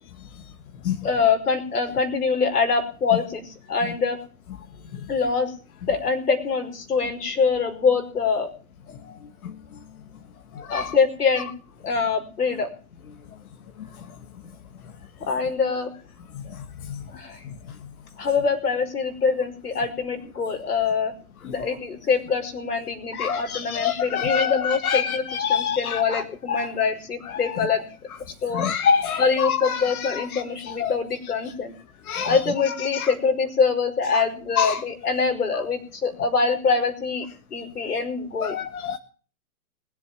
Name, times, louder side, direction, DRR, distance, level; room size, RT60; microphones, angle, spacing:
voice 1, 1.0-4.2 5.1-5.5 5.9-8.5 10.7-11.5 11.8-12.7 15.2-15.9 16.4-16.6 17.1-17.4 18.2-21.1 21.4-28.1 28.4-28.7 29.2-31.7 32.2-38.6, left 5 dB, 90° left, 5 dB, 5.0 m, -24 dB
voice 2, 10.6-10.9 16.9-17.0 23.1-26.2 26.5-26.7 28.5-30.4 30.8-30.9 32.1-32.4 32.9-33.1 34.1-34.2 34.6-34.8 38.4-39.0, left 7 dB, 70° left, 6 dB, 2.0 m, -26 dB
20.5 x 7.7 x 8.9 m, 0.42 s
hypercardioid pair, 140°, 45 cm